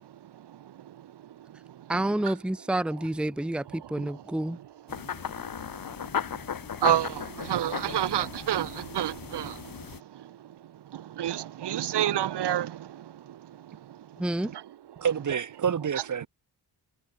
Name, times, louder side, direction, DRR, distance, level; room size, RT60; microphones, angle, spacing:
voice 1, 1.9-4.6 14.2-14.5, right 1 dB, 5° right, 0.9 m, -29 dB
sound 1, 4.9-10.0, left 8 dB, 55° left, 5.3 m, -36 dB
voice 2, 6.8-9.6 10.9-13.0, right 11 dB, 85° right, 1.8 m, -28 dB
voice 3, 15.0-16.3, right 7 dB, 45° right, 2.3 m, -28 dB
wide cardioid pair, 140°, 40 cm